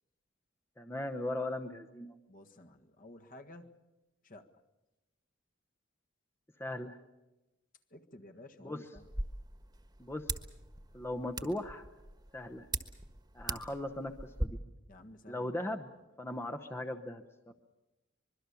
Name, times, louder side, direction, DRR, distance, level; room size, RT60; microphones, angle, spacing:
voice 1, 0.8-2.2 6.6-7.0 8.6-8.8 10.0-10.3 10.9-11.8 12.3-12.7 13.3-14.6 15.3-15.9 16.2-17.5, left 1 dB, 10° left, 5 dB, 0.9 m, -38 dB
voice 2, 2.3-3.8 4.2-4.5 7.9-9.1 14.9-15.5 15.9-16.0, left 1 dB, 45° left, 5 dB, 1.6 m, -53 dB
sound 1, 8.9-14.5, right 2 dB, 20° right, 1.4 m, -41 dB
25.0 x 22.0 x 7.0 m, 1.0 s
head